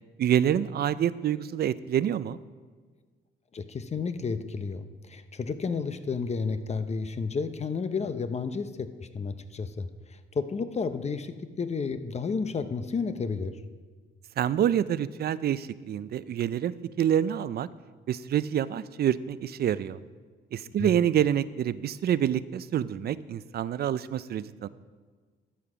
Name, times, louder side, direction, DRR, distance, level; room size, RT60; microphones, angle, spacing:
voice 1, 0.2-2.4 14.4-17.7 18.1-20.0 20.5-24.7, right 10 dB, 55° right, 17 dB, 0.5 m, -27 dB
voice 2, 3.5-13.6 20.8-20.9, left 5 dB, 35° left, 10 dB, 0.7 m, -32 dB
12.5 x 7.5 x 4.9 m, 1.5 s
cardioid pair, 90°, 20 cm